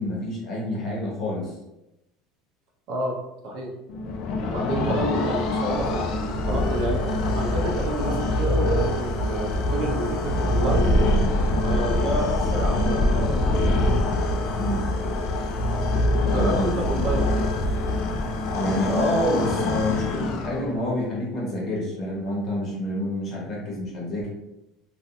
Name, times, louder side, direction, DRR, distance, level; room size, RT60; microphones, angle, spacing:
voice 1, 0.0-1.5 14.6-14.8 16.3-16.8 18.5-24.3, left 1 dB, 35° left, -3 dB, 0.9 m, -28 dB
voice 2, 2.9-3.7 4.5-7.0 7.3-10.9 11.6-13.6 16.2-17.5, right 1 dB, 50° right, -1 dB, 0.6 m, -29 dB
sound 1, 3.9-20.9, left 1 dB, 50° left, 0.3 m, -24 dB
2.4 x 2.3 x 2.6 m, 0.92 s
cardioid pair, 160°, 0 cm